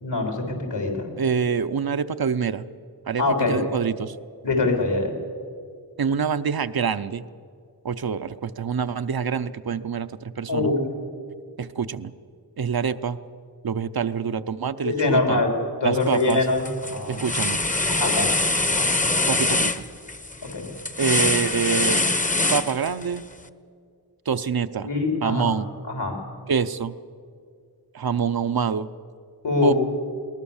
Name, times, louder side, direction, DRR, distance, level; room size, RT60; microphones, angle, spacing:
voice 1, 0.0-1.1 3.2-3.6 4.4-5.1 10.5-10.8 14.8-15.5 15.8-17.2 17.8-18.4 18.7-18.9 20.4-20.7 24.8-25.5 25.9-26.2 29.4-29.7, left 3 dB, 80° left, 2 dB, 3.9 m, -23 dB
voice 2, 1.2-2.6 3.1-3.2 3.5-4.2 6.0-7.2 7.8-10.7 11.6-12.1 12.6-13.2 13.6-15.4 15.8-16.5 17.1-17.6 19.3-19.8 21.0-22.0 22.5-23.2 24.3-24.9 25.2-25.7 26.5-26.9 27.9-28.9 29.6-29.7, right 6 dB, 60° right, 11 dB, 0.8 m, -26 dB
sound 1, 16.0-16.3 16.6-23.2, left 2 dB, 20° left, 0.9 m, -23 dB
21.5 x 19.0 x 7.2 m, 2.2 s
wide cardioid pair, 70°, 40 cm